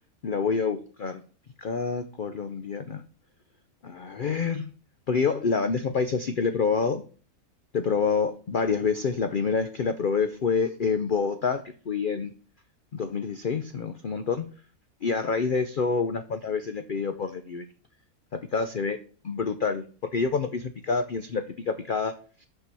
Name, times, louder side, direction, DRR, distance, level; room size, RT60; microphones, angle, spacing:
voice 1, 0.2-1.2 1.6-3.0 3.8-4.7 5.1-7.0 7.7-12.3 12.9-14.5 15.0-17.7 18.3-22.5, left 5 dB, 80° left, 9 dB, 0.4 m, -27 dB
5.7 x 5.7 x 6.7 m, 0.40 s
omnidirectional pair, 1.7 m